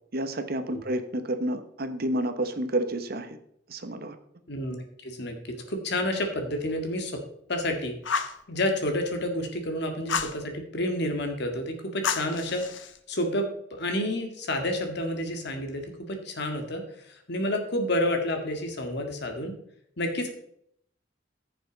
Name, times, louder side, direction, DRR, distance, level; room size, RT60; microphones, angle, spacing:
voice 1, 0.1-3.4 3.7-4.2, right 1 dB, 55° right, 9 dB, 1.1 m, -30 dB
voice 2, 5.0-5.4 5.7-7.1 7.5-7.9 8.5-12.7 13.1-19.6 20.0-20.3, left 1 dB, 65° left, 4 dB, 1.9 m, -29 dB
Fire, 8.0-8.4 10.1-10.4 12.0-13.0, left 6 dB, 85° left, 0.9 m, -30 dB
15.0 x 6.9 x 4.0 m, 0.71 s
head